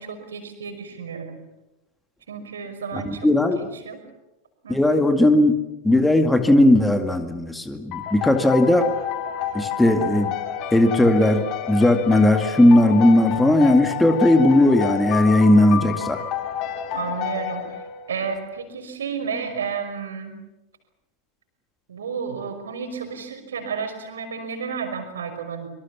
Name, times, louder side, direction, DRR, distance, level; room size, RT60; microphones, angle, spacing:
voice 1, 0.0-1.4 2.3-4.0 4.6-5.0 16.9-20.4 21.9-25.7, right 6 dB, 65° right, 7 dB, 5.4 m, -32 dB
voice 2, 2.9-3.6 4.7-5.6 5.8-8.9 9.5-10.3 10.7-16.2, left 1 dB, 5° left, 7 dB, 2.1 m, -17 dB
sound 1, 7.9-18.3, left 9 dB, 40° left, 2.6 m, -30 dB
26.0 x 24.5 x 7.2 m, 0.96 s
figure-of-eight pair, 90°, 0 cm